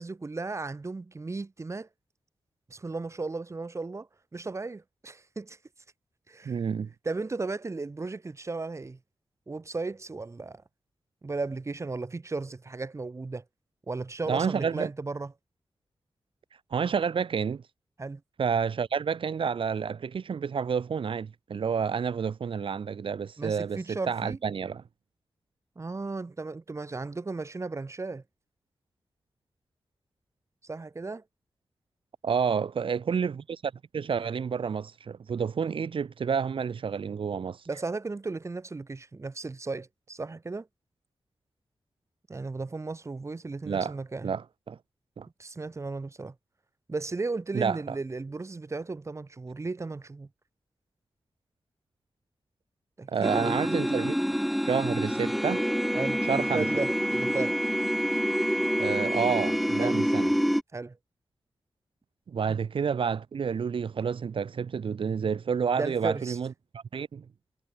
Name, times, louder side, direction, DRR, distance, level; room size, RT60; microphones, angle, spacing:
voice 1, 0.0-1.9 2.7-5.6 6.3-6.6 7.0-9.0 9.5-10.6 11.2-13.4 13.9-15.3 18.0-18.2 23.4-24.4 25.8-28.2 30.6-31.2 37.7-40.7 42.3-44.3 45.4-46.3 46.9-50.3 53.0-53.6 55.9-57.6 59.8-60.0 60.7-61.0 65.8-66.4, right 3 dB, 35° right, 3.9 m, -35 dB
voice 2, 6.4-6.9 14.3-14.9 16.7-17.6 18.4-24.8 32.2-37.6 43.6-44.0 44.2-44.8 45.2-45.3 47.5-47.9 53.1-54.4 54.6-55.6 56.3-56.6 58.8-60.3 62.3-67.2, right 6 dB, 75° right, 3.0 m, -29 dB
sound 1, 53.2-60.6, equal, ahead, 3.3 m, -27 dB
wide cardioid pair, 120°, 9 cm